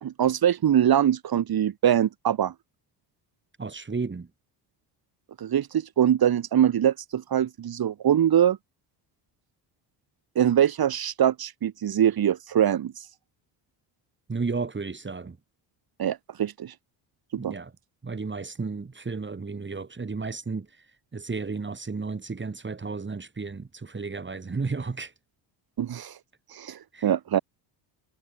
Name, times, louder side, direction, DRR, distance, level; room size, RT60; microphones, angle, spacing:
voice 1, 0.0-2.5 5.4-8.6 10.3-12.9 16.0-16.7 17.4-17.5 25.8-26.1 26.5-27.4, right 10 dB, 50° right, 2.9 m, -23 dB
voice 2, 3.6-4.3 14.3-15.4 17.4-17.7 18.0-20.8 21.1-25.1 26.9-27.1, right 4 dB, 25° right, 5.8 m, -33 dB
cardioid pair, 95°, 46 cm